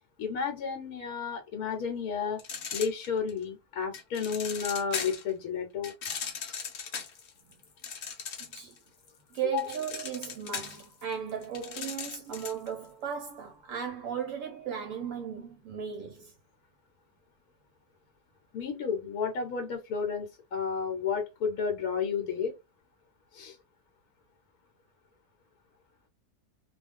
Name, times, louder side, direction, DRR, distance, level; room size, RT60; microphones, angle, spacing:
voice 1, 0.2-2.4 2.7-5.9 9.5-9.7 18.5-22.5 23.3-23.6, left 6 dB, 75° left, 1.1 m, -32 dB
sound 1, 2.4-3.4 3.9-5.3 5.8-8.8 9.1-12.7, left 6 dB, 60° left, 0.8 m, -38 dB
voice 2, 9.3-16.3, right 8 dB, 70° right, 0.8 m, -36 dB
2.4 x 2.2 x 3.4 m
omnidirectional pair, 1.6 m